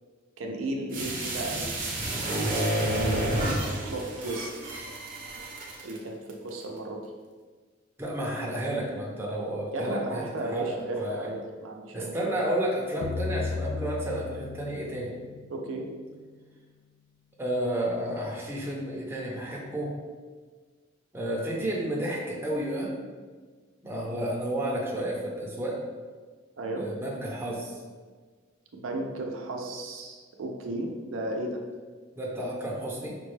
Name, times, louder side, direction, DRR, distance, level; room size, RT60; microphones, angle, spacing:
voice 1, 0.4-1.8 2.4-4.5 5.8-7.0 9.7-12.3 15.5-15.9 26.6-26.9 28.7-31.6, right 2 dB, 85° right, 2 dB, 0.5 m, -34 dB
sound 1, 0.9-6.0 6.3-6.4, right 1 dB, 45° right, 0.7 m, -30 dB
voice 2, 8.0-10.7 11.0-11.3 11.9-15.1 17.4-19.9 21.1-22.9 23.8-25.8 26.7-27.8 32.2-33.1, right 1 dB, 10° right, -4 dB, 0.6 m, -31 dB
sound 2, 13.0-16.1, left 4 dB, 70° left, 0.4 m, -35 dB
5.1 x 2.2 x 3.2 m, 1.5 s
head